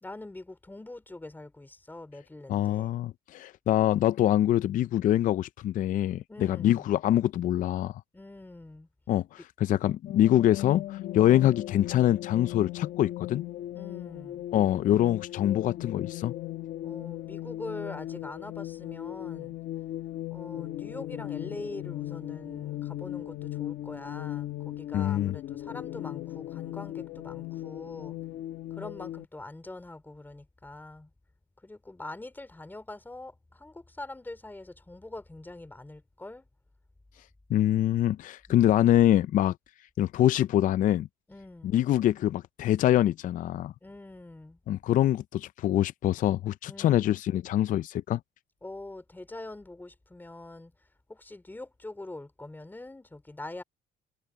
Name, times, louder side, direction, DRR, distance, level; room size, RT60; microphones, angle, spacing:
voice 1, 0.0-3.0 6.3-6.9 8.1-8.9 11.1-11.4 13.7-14.5 16.8-19.6 20.3-28.2 28.7-31.1 31.6-36.5 38.5-38.7 41.3-41.8 43.8-44.6 46.7-47.1 48.6-50.7 51.1-53.6, left 2 dB, 10° left, 3.7 m, -44 dB
voice 2, 2.5-8.0 9.1-13.4 14.5-16.3 24.9-25.3 37.5-39.5 40.0-41.1 41.7-43.7 44.7-48.2, left 12 dB, 50° left, 0.4 m, -24 dB
sound 1, 10.1-29.2, left 14 dB, 65° left, 1.4 m, -38 dB
cardioid pair, 110°, 17 cm